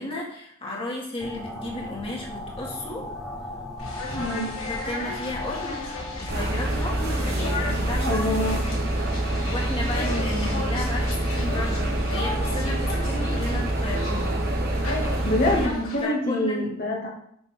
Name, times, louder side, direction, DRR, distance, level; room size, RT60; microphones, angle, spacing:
voice 1, 0.0-3.1 4.2-5.8 6.2-8.3 9.4-14.4 16.0-16.7, left 1 dB, 25° left, -2 dB, 2.1 m, -33 dB
sound 1, 1.2-7.6, left 2 dB, ahead, 1.3 m, -38 dB
sound 2, 3.8-16.0, left 2 dB, 75° left, 3.4 m, -35 dB
voice 2, 4.1-4.5 8.0-8.6 15.3-17.1, left 1 dB, 40° left, -2 dB, 2.0 m, -25 dB
sound 3, 6.3-15.7, right 1 dB, 45° right, 1.3 m, -26 dB
9.8 x 6.7 x 3.6 m, 0.71 s
head